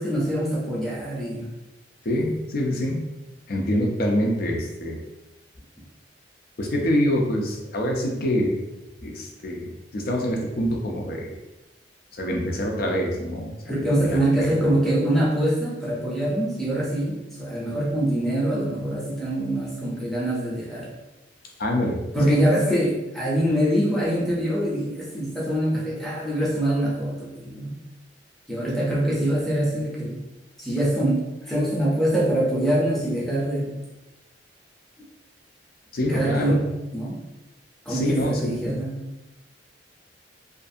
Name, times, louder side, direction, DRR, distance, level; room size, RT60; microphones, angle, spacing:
voice 1, 0.0-1.5 13.7-20.9 22.1-27.8 28.5-30.2 30.6-33.7 36.1-37.2 37.9-38.9, right 1 dB, ahead, -6 dB, 0.6 m, -24 dB
voice 2, 2.0-3.0 3.5-5.0 6.6-8.6 9.0-9.6 9.9-11.3 12.2-14.5 21.6-22.5 35.9-36.6 37.9-38.7, equal, 55° left, 0 dB, 0.5 m, -25 dB
2.5 x 2.4 x 2.6 m, 1.0 s
head